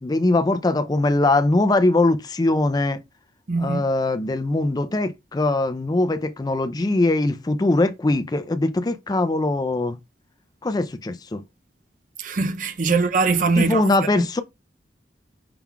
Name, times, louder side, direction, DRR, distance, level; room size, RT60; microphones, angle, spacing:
voice 1, 0.0-3.0 3.6-10.0 10.6-11.4 13.6-14.4, left 2 dB, 20° left, 0.4 m, -21 dB
voice 2, 3.5-3.8 12.2-13.9 14.1-14.3, right 4 dB, 45° right, 0.5 m, -22 dB
5.8 x 2.3 x 3.6 m
head